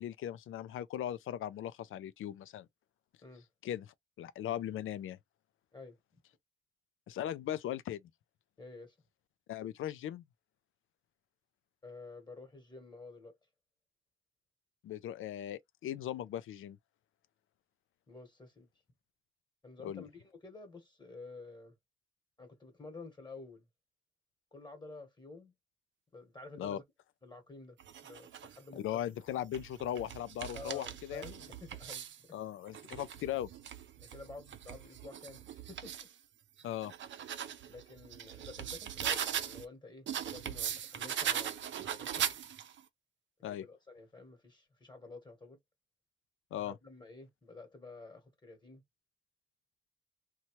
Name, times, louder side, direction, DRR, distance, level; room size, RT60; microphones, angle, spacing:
voice 1, 0.0-2.7 3.6-5.2 7.1-8.0 9.5-10.2 14.8-16.8 19.8-20.0 26.6-26.8 28.8-31.4 32.3-33.5 36.6-36.9 43.4-43.6 46.5-46.7, left 11 dB, 85° left, 0.4 m, -38 dB
voice 2, 8.6-8.9 11.8-13.3 18.1-18.7 19.6-21.7 22.4-23.6 24.5-25.5 26.1-26.8 27.2-27.8 28.0-29.0 30.5-32.4 34.0-35.9 37.7-42.3 43.6-45.6 46.6-48.8, left 3 dB, 20° left, 1.2 m, -50 dB
sound 1, 27.8-28.6 29.3-32.2 32.7-36.1 36.6-39.7 40.1-42.8, right 9 dB, 65° right, 0.5 m, -40 dB
2.8 x 2.3 x 2.9 m
cardioid pair, 85°, 20 cm